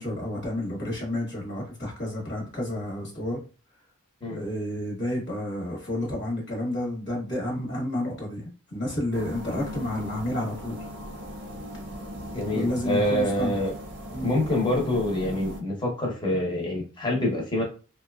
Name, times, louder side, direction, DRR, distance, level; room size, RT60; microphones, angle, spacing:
voice 1, 0.0-3.4 4.3-10.8 12.5-13.5 14.1-14.3, left 1 dB, 55° left, -2 dB, 1.1 m, -30 dB
sound 1, 9.1-15.6, equal, 55° right, 0.5 m, -38 dB
voice 2, 12.3-13.7 14.2-17.6, left 1 dB, 20° left, -1 dB, 0.8 m, -26 dB
2.8 x 2.2 x 2.2 m, 0.35 s
head